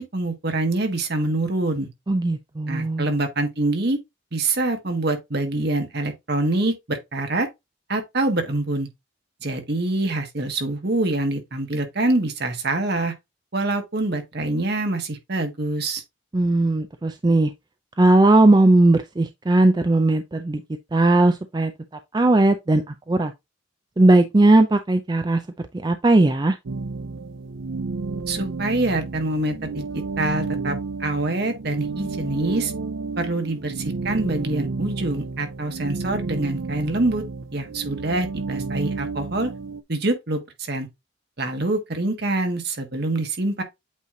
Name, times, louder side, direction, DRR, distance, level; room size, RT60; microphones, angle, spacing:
voice 1, 0.0-1.9 2.7-4.0 4.3-7.5 7.9-8.9 9.4-13.1 13.5-16.0 28.3-32.7 33.2-37.2 37.5-39.5 39.9-40.9 41.4-43.6, right 2 dB, 55° right, 1.6 m, -25 dB
voice 2, 2.1-3.1 16.3-17.5 18.0-20.6 20.9-21.7 22.1-23.3 24.0-25.4 25.8-26.6, right 2 dB, 20° right, 0.4 m, -18 dB
sound 1, 26.7-39.8, right 4 dB, 90° right, 0.5 m, -31 dB
8.3 x 3.1 x 3.8 m
head